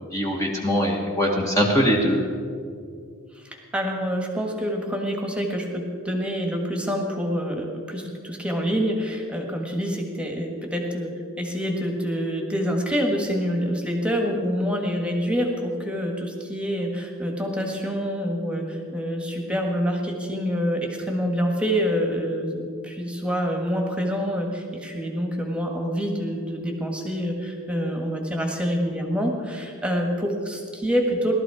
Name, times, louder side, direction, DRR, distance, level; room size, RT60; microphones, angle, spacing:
voice 1, 0.1-2.2, equal, 15° left, -2 dB, 1.3 m, -22 dB
voice 2, 3.3-11.1 11.4-31.3, equal, 5° right, 1 dB, 1.6 m, -26 dB
17.5 x 12.5 x 4.8 m, 2.3 s
head